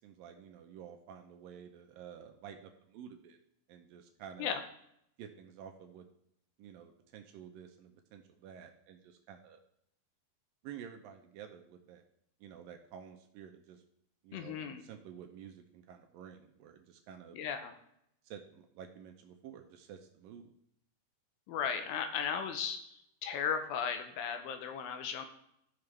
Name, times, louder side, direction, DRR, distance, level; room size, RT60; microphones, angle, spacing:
voice 1, 0.0-3.4 3.7-4.6 5.2-6.1 6.6-9.6 10.6-12.0 12.4-13.8 14.2-17.4 18.2-20.5, right 8 dB, 80° right, 4 dB, 2.3 m, -51 dB
voice 2, 14.3-14.8 17.3-17.7 21.5-22.8 23.2-25.3, left 7 dB, 80° left, 7 dB, 2.5 m, -35 dB
14.0 x 5.8 x 3.3 m, 0.74 s
omnidirectional pair, 4.4 m